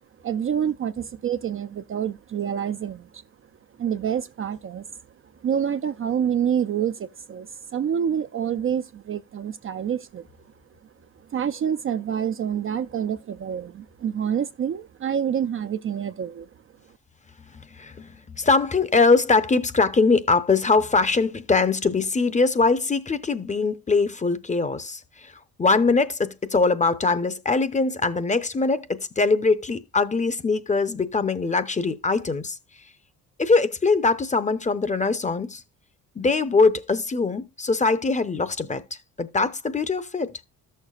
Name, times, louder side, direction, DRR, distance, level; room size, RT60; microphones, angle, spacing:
voice 1, 0.2-3.2 3.8-4.9 5.4-10.3 11.3-16.5, right 8 dB, 40° right, 0.4 m, -27 dB
voice 2, 17.7-25.3 25.6-32.6 33.4-35.6 36.2-38.8 39.2-40.3, left 4 dB, 20° left, 0.7 m, -22 dB
13.5 x 6.5 x 2.4 m
cardioid pair, 105°, 34 cm